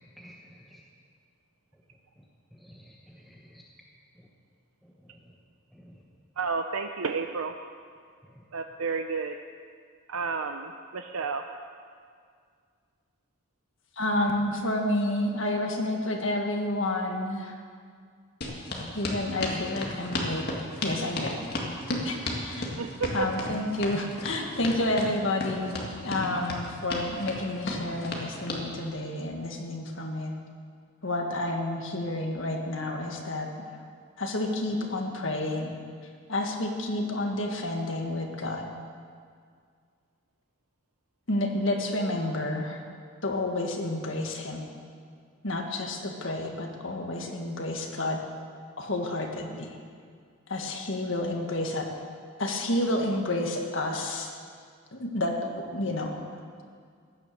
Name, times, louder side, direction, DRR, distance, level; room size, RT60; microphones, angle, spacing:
voice 1, 0.2-0.8 2.2-2.3 2.5-3.6 4.2-4.3 4.8-5.4 5.7-6.0 8.2-8.4, equal, ahead, -3 dB, 1.0 m, -53 dB
voice 2, 6.4-7.5 8.5-9.4 10.1-11.4 22.8-23.3, right 4 dB, 90° right, 5 dB, 0.6 m, -31 dB
voice 3, 14.0-17.6 18.9-20.5 20.8-21.4 21.9-22.8 23.1-30.3 31.0-33.7 34.2-35.7 36.3-38.7 41.3-42.8 43.2-44.7 45.4-48.2 48.8-49.8 50.5-51.9 52.4-54.3 54.9-56.2, left 1 dB, 65° left, 2 dB, 1.8 m, -30 dB
sound 1, 18.4-28.6, left 2 dB, 45° left, 2.0 m, -34 dB
16.0 x 10.5 x 6.8 m, 2.1 s
head